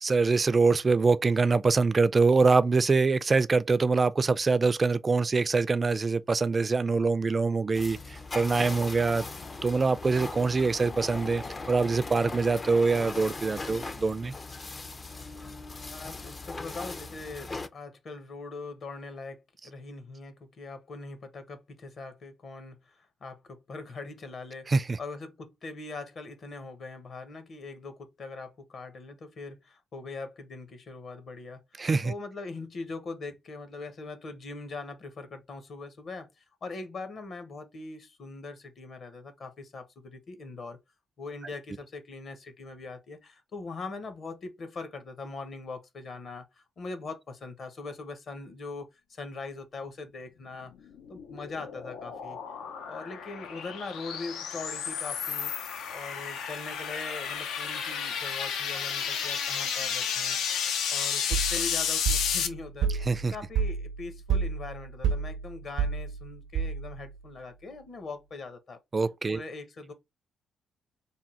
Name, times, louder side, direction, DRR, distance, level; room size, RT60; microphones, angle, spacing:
voice 1, 0.0-9.2 9.6-14.3 24.7-25.0 31.8-32.1 63.1-63.3 68.9-69.4, right 4 dB, 30° right, 0.3 m, -24 dB
sound 1, 7.7-17.7, left 3 dB, 30° left, 0.5 m, -39 dB
voice 2, 15.9-24.7 25.0-36.3 36.6-40.8 41.2-50.7 51.1-52.4 52.9-55.5 55.9-60.4 60.9-68.8 69.3-69.9, left 3 dB, 50° left, 1.0 m, -41 dB
sound 2, 50.8-62.5, left 7 dB, 85° left, 0.6 m, -32 dB
sound 3, 61.3-67.1, right 6 dB, 90° right, 0.7 m, -30 dB
3.5 x 2.3 x 4.3 m
cardioid pair, 90°, 0 cm